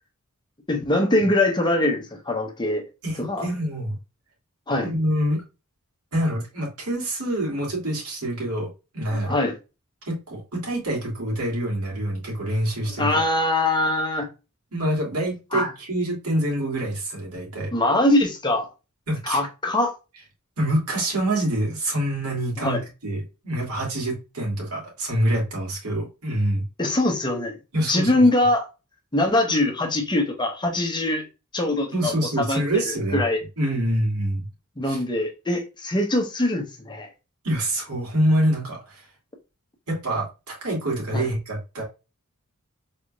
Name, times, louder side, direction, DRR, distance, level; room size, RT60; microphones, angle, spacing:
voice 1, 0.7-2.8 3.2-3.5 4.7-4.9 9.1-9.6 13.0-14.3 15.5-15.7 17.7-18.7 19.3-19.9 22.6-22.8 26.8-27.5 27.8-28.7 29.1-31.2 31.5-32.8 33.1-33.4 34.8-37.1 41.1-41.2, left 1 dB, 20° left, 0.9 m, -22 dB
voice 2, 3.0-3.9 4.8-5.4 6.1-8.7 8.9-9.4 10.1-13.2 14.7-17.7 19.1-19.4 20.6-26.6 27.7-28.2 31.9-33.2 33.6-34.5 34.8-35.0 37.4-39.1 39.9-41.8, right 1 dB, 85° right, 2.4 m, -26 dB
4.1 x 3.6 x 2.4 m
head